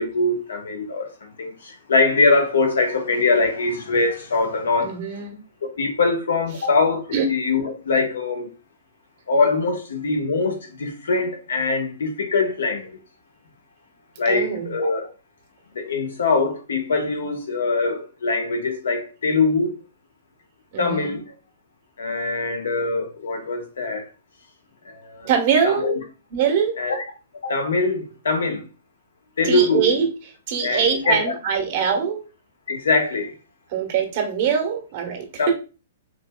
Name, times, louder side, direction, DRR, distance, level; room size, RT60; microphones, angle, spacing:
voice 1, 0.0-5.0 5.8-8.5 9.3-13.0 14.2-15.1 15.7-19.8 20.8-21.3 22.0-24.1 24.8-25.3 25.6-26.0 26.8-27.0 27.4-28.6 29.4-29.9 30.6-31.3 32.7-33.3 35.4-35.5, left 3 dB, 80° left, 1.0 m, -22 dB
voice 2, 4.8-5.4 7.1-7.3 14.2-14.7 20.7-21.2 25.2-25.9 26.3-26.8 29.4-30.1 30.5-32.2 33.7-35.5, right 7 dB, 50° right, 1.2 m, -23 dB
4.1 x 2.9 x 2.2 m
hypercardioid pair, 125°, 0 cm